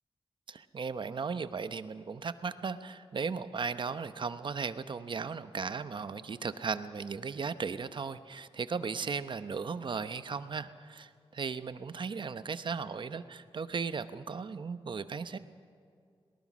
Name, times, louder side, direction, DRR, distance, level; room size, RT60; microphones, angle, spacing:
voice 1, 0.5-15.4, right 5 dB, 55° right, 12 dB, 0.9 m, -36 dB
22.5 x 19.0 x 6.2 m, 2.3 s
cardioid pair, 80°, 10 cm